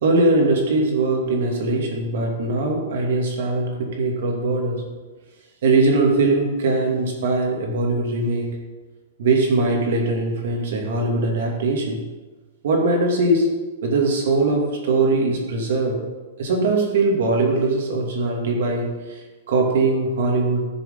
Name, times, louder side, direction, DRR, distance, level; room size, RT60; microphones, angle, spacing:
voice 1, 0.0-4.9 5.6-8.5 9.2-12.0 12.6-13.5 13.8-16.0 16.4-20.7, right 2 dB, 55° right, 0 dB, 2.5 m, -21 dB
16.0 x 6.8 x 3.9 m, 1.3 s
supercardioid pair, 175°, 0 cm